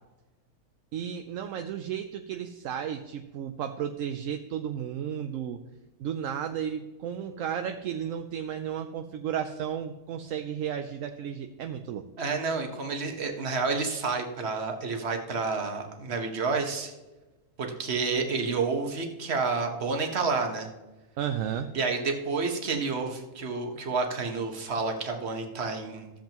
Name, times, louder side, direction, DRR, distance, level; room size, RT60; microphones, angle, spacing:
voice 1, 0.9-5.6 6.0-12.0 21.2-21.7, right 9 dB, 70° right, 7 dB, 0.8 m, -33 dB
voice 2, 12.2-16.9 17.6-20.7 21.7-26.1, right 4 dB, 45° right, 3 dB, 1.4 m, -29 dB
14.0 x 7.4 x 3.0 m, 1.1 s
omnidirectional pair, 1.6 m